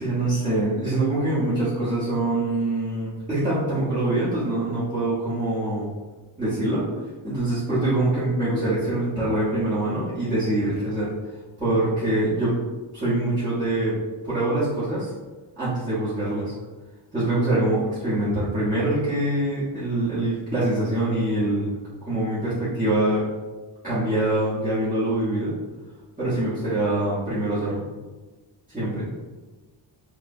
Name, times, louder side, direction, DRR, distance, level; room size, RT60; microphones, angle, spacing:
voice 1, 0.0-5.9 6.4-6.8 7.2-11.1 11.6-12.5 12.9-13.9 14.2-15.1 15.6-16.5 17.1-21.7 22.0-23.2 23.8-25.5 26.2-27.8 28.7-29.0, right 1 dB, 15° right, -13 dB, 1.0 m, -24 dB
4.6 x 2.2 x 2.6 m, 1.3 s
wide cardioid pair, 150°, 48 cm